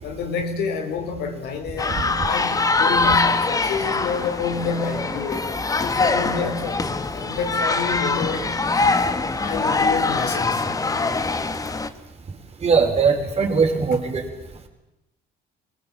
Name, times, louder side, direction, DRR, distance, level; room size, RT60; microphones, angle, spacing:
voice 1, 0.0-6.9 7.1-8.6 9.3-10.7, left 5 dB, 75° left, 4.3 m, -28 dB
sound 1, 1.8-11.9, left 3 dB, 20° left, 1.6 m, -23 dB
voice 2, 12.6-14.2, right 5 dB, 40° right, 4.7 m, -20 dB
25.5 x 18.0 x 9.1 m
cardioid pair, 110°, 17 cm